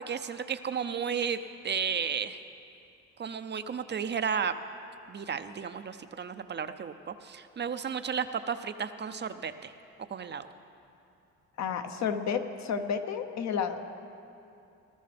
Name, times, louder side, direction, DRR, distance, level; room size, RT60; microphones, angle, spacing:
voice 1, 0.0-2.4 3.2-4.6 5.1-9.7 10.1-10.5, right 7 dB, 35° right, 10 dB, 0.5 m, -33 dB
voice 2, 11.6-13.8, left 7 dB, 65° left, 6 dB, 0.9 m, -31 dB
19.5 x 13.0 x 3.4 m, 2.7 s
cardioid pair, 90°, 30 cm